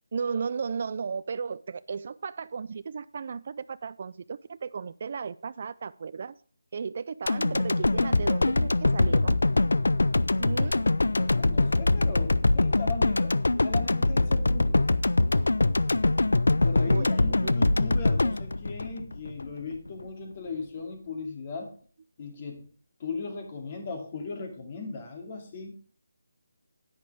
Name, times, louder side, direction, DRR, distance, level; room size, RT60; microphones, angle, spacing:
voice 1, 0.1-6.4 6.7-9.4 10.4-10.8 16.9-17.6, right 5 dB, 40° right, 0.3 m, -35 dB
sound 1, 7.3-19.5 19.9-20.0, left 2 dB, 90° left, 0.6 m, -23 dB
voice 2, 11.1-13.4 13.6-14.8 16.6-21.7 22.2-22.6 23.0-25.7, left 4 dB, 30° left, 2.7 m, -37 dB
10.5 x 10.0 x 3.5 m
figure-of-eight pair, 170°, 0 cm